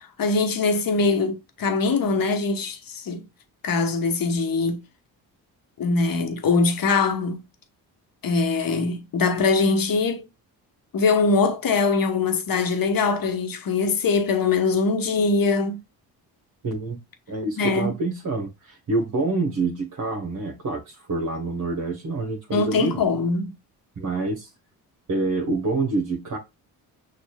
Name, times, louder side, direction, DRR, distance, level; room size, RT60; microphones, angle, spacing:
voice 1, 0.2-3.2 3.6-4.8 5.8-7.4 8.2-10.2 10.9-15.8 17.6-17.9 22.5-23.5, left 4 dB, 45° left, 1.0 m, -22 dB
voice 2, 16.6-17.0 17.3-23.0 24.0-24.5 25.1-26.4, right 3 dB, 40° right, 1.1 m, -27 dB
6.1 x 2.4 x 2.2 m
hypercardioid pair, 45°, 47 cm